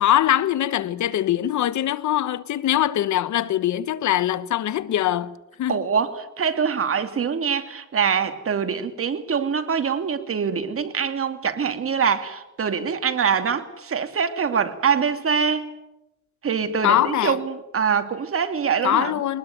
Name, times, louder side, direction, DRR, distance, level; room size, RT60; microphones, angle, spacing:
voice 1, 0.0-5.9 16.8-17.4 18.8-19.4, left 12 dB, 70° left, 1.1 m, -22 dB
voice 2, 5.7-15.7 16.4-19.1, right 6 dB, 45° right, 2.6 m, -24 dB
23.0 x 19.5 x 9.3 m
cardioid pair, 90°, 30 cm